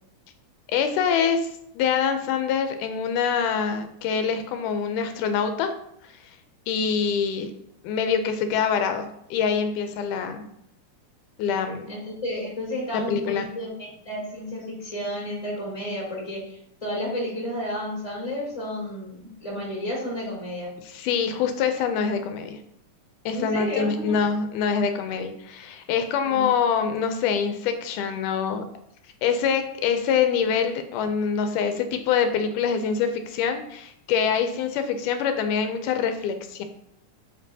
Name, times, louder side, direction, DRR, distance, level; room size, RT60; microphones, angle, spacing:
voice 1, 0.7-1.5 1.8-5.7 6.0-6.3 6.7-7.5 7.8-10.4 11.4-11.9 12.9-13.5 20.9-22.6 23.3-28.6 29.2-36.6, left 6 dB, 85° left, 7 dB, 2.1 m, -25 dB
voice 2, 11.9-20.7 23.3-24.2 26.2-26.5, left 1 dB, 10° left, -4 dB, 2.2 m, -32 dB
7.4 x 5.0 x 2.7 m, 0.76 s
omnidirectional pair, 3.6 m